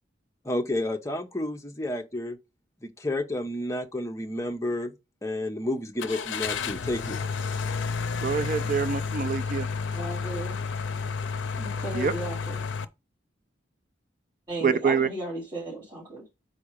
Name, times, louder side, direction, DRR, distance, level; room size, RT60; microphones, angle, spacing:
voice 1, 0.4-2.4 2.8-4.9 5.2-7.2, left 1 dB, 15° left, 0.7 m, -30 dB
Car / Engine starting, 6.0-12.8, left 5 dB, 70° left, 0.5 m, -31 dB
voice 2, 8.2-9.7 11.9-12.1 14.6-15.1, right 6 dB, 45° right, 0.4 m, -26 dB
voice 3, 9.9-10.6 11.6-12.6 14.5-16.2, right 1 dB, 25° right, 2.9 m, -35 dB
4.7 x 4.2 x 5.0 m
head